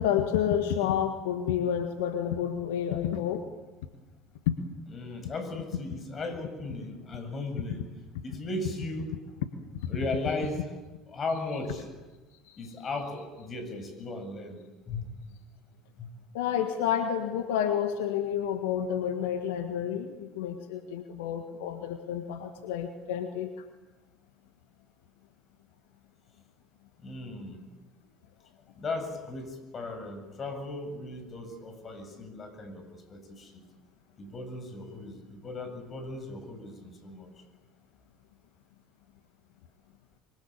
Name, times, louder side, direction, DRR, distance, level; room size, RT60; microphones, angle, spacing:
voice 1, 0.0-3.4 4.5-4.6 9.8-9.9 12.4-12.8 16.3-23.7, left 9 dB, 75° left, 6 dB, 1.7 m, -30 dB
voice 2, 4.9-7.8 8.2-9.2 9.9-10.6 11.1-11.9 12.6-14.6 14.9-15.1 16.0-16.1 27.0-27.6 28.8-33.6 34.2-37.3, left 2 dB, 35° left, 8 dB, 7.6 m, -36 dB
26.0 x 24.0 x 8.9 m, 1.2 s
hypercardioid pair, 70°, 0 cm